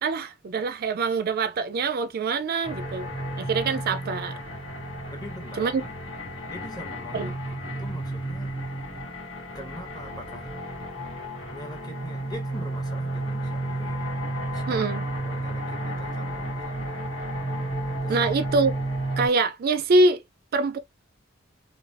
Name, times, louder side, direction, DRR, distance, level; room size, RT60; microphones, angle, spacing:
voice 1, 0.0-3.1 3.4-4.3 5.6-5.8 7.1-7.3 14.7-15.0 18.1-18.7 19.2-20.2 20.5-20.8, right 3 dB, 50° right, 0.4 m, -24 dB
sound 1, 2.6-19.3, right 1 dB, 75° left, 1.9 m, -32 dB
voice 2, 5.1-5.9 6.5-7.4 7.7-8.5 9.5-10.6 11.5-14.0 14.5-16.9 18.0-18.5, equal, 20° left, 1.0 m, -43 dB
3.2 x 2.6 x 2.5 m
head